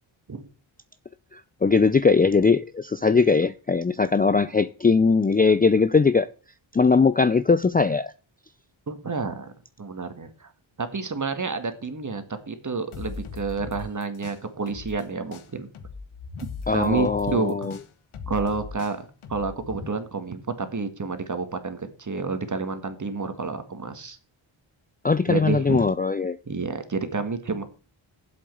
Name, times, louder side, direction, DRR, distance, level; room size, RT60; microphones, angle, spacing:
voice 1, 1.3-6.3 6.7-8.1 16.7-17.8 25.0-26.4, left 4 dB, 20° left, 0.4 m, -20 dB
voice 2, 8.9-9.5 9.8-10.5 10.8-15.7 16.7-17.7 18.3-19.0 19.3-24.2 25.3-25.8 26.5-27.6, right 4 dB, 40° right, 2.0 m, -29 dB
sound 1, 12.9-15.0 15.3-19.9, left 5 dB, 90° left, 1.4 m, -39 dB
7.9 x 7.6 x 7.8 m
cardioid pair, 70°, 48 cm